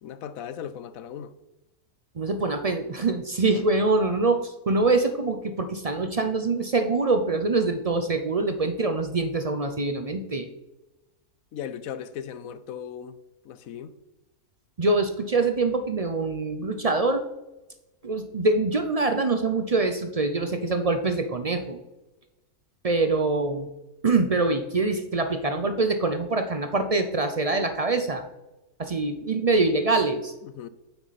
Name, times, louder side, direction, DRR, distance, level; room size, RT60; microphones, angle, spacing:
voice 1, 0.0-1.3 11.5-13.2 13.4-13.9 30.4-30.7, left 8 dB, 70° left, 1.0 m, -37 dB
voice 2, 2.2-10.5 14.8-17.2 18.0-21.8 22.8-23.7 24.0-28.2 28.8-30.3, right 3 dB, 50° right, 0.4 m, -24 dB
9.3 x 8.0 x 4.1 m
omnidirectional pair, 1.6 m